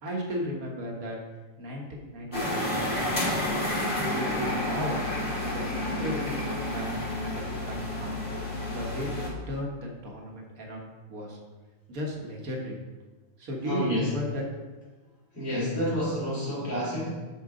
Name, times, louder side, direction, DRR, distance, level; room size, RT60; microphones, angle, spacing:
voice 1, 0.0-1.2 1.6-3.0 3.5-5.0 5.5-6.9 7.2-8.2 8.7-11.4 11.9-12.8 13.4-14.4, equal, 80° right, 0 dB, 1.8 m, -35 dB
sound 1, 2.3-9.3, left 1 dB, 35° left, 2.6 m, -30 dB
Laughter, 4.0-7.2, left 1 dB, 60° left, 2.1 m, -45 dB
voice 2, 13.6-14.1 15.3-17.3, equal, 85° left, -8 dB, 3.3 m, -29 dB
7.2 x 6.4 x 3.8 m, 1.3 s
omnidirectional pair, 1.5 m